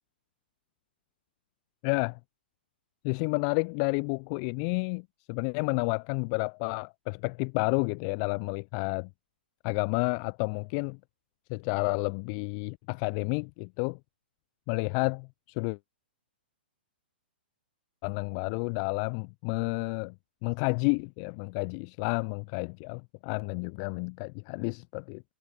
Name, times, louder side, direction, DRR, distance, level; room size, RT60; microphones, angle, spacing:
voice 1, 1.8-2.2 3.0-9.1 9.6-11.0 11.5-14.0 14.7-15.3 15.6-15.8 18.0-20.1 20.4-25.2, left 37 dB, 35° left, 0.5 m, -30 dB
figure-of-eight pair, 115°, 6 cm